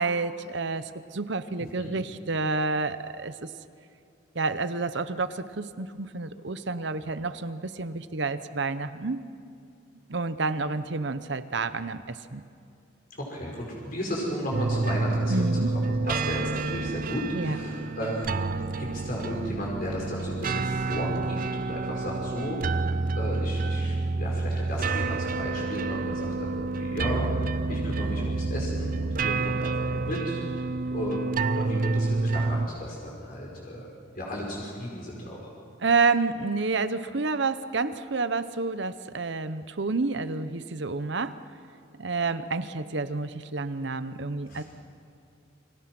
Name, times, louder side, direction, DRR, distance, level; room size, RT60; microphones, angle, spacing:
voice 1, 0.0-3.5 4.3-9.2 10.1-12.4 15.3-15.7 17.3-17.6 35.8-41.4 42.0-44.6, right 3 dB, 65° right, 12 dB, 0.9 m, -29 dB
voice 2, 13.1-18.5 18.8-30.6 30.9-33.9 34.1-35.5 44.5-44.6, equal, 50° left, -3 dB, 4.9 m, -34 dB
sound 1, 14.5-32.7, right 3 dB, 45° right, 0.6 m, -29 dB
29.5 x 23.5 x 6.1 m, 2.5 s
head